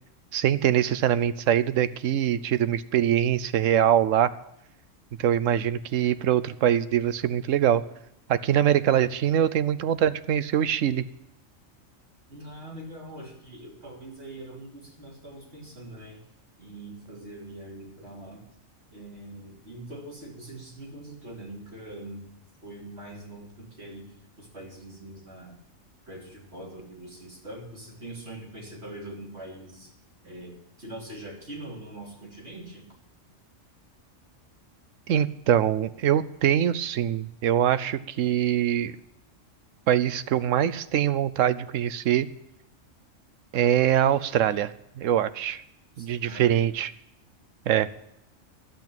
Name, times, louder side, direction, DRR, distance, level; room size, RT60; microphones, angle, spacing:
voice 1, 0.3-4.3 5.2-7.8 8.3-11.0 35.1-38.9 39.9-42.3 43.5-45.6 46.0-46.9 47.7-47.9, right 10 dB, 80° right, 15 dB, 1.0 m, -23 dB
voice 2, 12.3-16.2 16.6-18.4 18.9-22.3 22.6-25.6 26.1-29.9 30.2-32.9 46.0-46.7, right 1 dB, 55° right, -2 dB, 3.5 m, -43 dB
11.5 x 8.3 x 8.8 m, 0.79 s
omnidirectional pair, 1.4 m